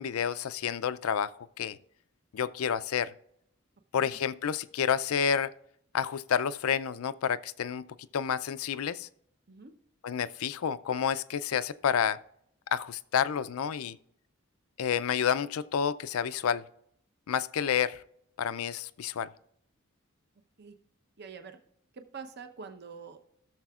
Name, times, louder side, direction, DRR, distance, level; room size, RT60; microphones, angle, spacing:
voice 1, 0.0-1.8 2.3-3.1 3.9-5.5 5.9-7.8 8.1-9.1 10.0-12.2 12.7-14.0 14.8-16.6 17.3-18.0 18.4-19.3, left 7 dB, 80° left, 0.4 m, -29 dB
voice 2, 21.2-21.6 21.9-23.2, right 5 dB, 50° right, 0.8 m, -45 dB
16.5 x 6.7 x 2.4 m
head